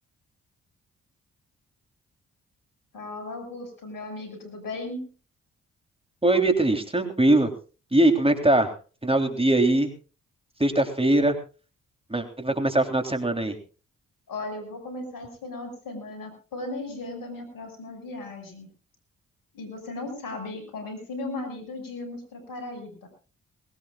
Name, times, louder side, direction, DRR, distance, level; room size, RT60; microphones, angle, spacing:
voice 1, 2.9-5.1 14.3-18.7 19.5-23.1, left 2 dB, 70° left, 6 dB, 6.0 m, -36 dB
voice 2, 6.2-7.5 7.9-8.7 9.0-9.9 10.6-11.4 12.1-13.6, right 1 dB, 15° right, 6 dB, 3.4 m, -21 dB
20.5 x 18.5 x 2.4 m, 0.36 s
hypercardioid pair, 45°, 35 cm